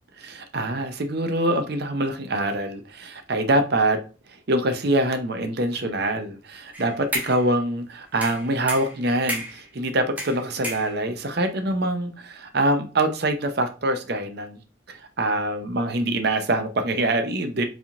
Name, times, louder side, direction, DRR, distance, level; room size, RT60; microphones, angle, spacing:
voice 1, 0.2-4.0 4.5-14.6 14.9-17.7, right 1 dB, 55° right, 0.7 m, -24 dB
sound 1, 6.7-7.5 8.2-9.7 10.2-11.3, right 1 dB, 10° right, 1.1 m, -32 dB
4.9 x 3.6 x 2.5 m
head